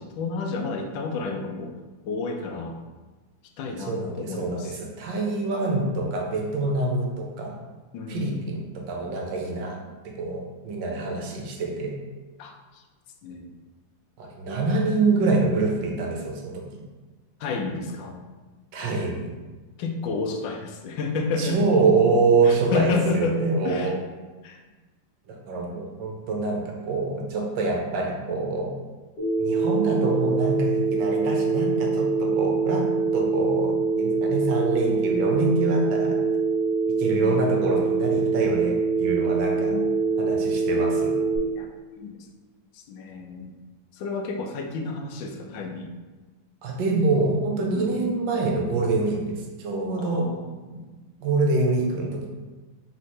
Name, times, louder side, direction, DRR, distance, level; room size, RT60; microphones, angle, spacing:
voice 1, 0.0-1.7 2.1-2.8 3.6-4.8 7.9-8.5 12.4-12.8 13.2-13.5 17.4-18.2 19.8-21.6 22.4-23.9 24.4-24.6 37.1-37.4 39.7-39.9 41.5-42.3 42.7-43.5 43.9-45.9 47.7-48.0 50.0-50.5, left 3 dB, 80° left, 3 dB, 1.3 m, -30 dB
voice 2, 3.8-7.5 8.1-9.8 10.0-11.9 14.2-16.6 18.7-19.3 21.4-24.0 25.3-28.7 29.4-32.9 33.1-36.2 37.0-39.8 40.2-41.1 46.6-50.3 50.7-50.8 51.2-52.3, right 3 dB, 75° right, 0 dB, 1.4 m, -25 dB
Telephone, 29.2-41.4, right 4 dB, 65° left, 1.8 m, -24 dB
3.8 x 3.1 x 4.2 m, 1.3 s
omnidirectional pair, 2.1 m